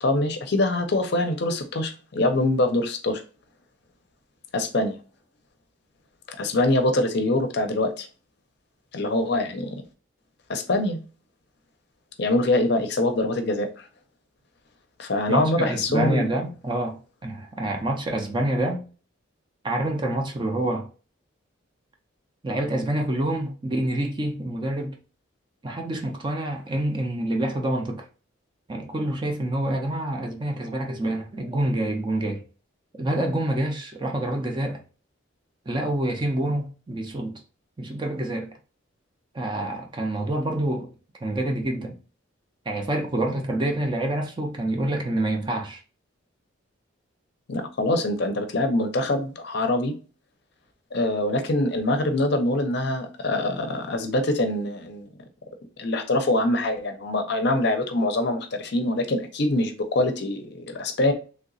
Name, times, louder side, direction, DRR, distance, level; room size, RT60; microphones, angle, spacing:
voice 1, 0.0-3.2 4.5-5.0 6.3-8.1 8.9-9.8 10.5-11.0 12.2-13.9 15.0-16.3 47.5-49.9 50.9-55.1 55.8-61.1, left 2 dB, 55° left, 0.5 m, -24 dB
voice 2, 15.3-18.8 19.6-20.9 22.4-25.0 25.6-28.0 28.7-32.4 33.0-34.8 35.7-37.4 37.8-38.5 39.3-40.9 41.2-41.9 42.7-45.8, right 1 dB, 20° right, 0.5 m, -27 dB
3.2 x 2.8 x 2.6 m
head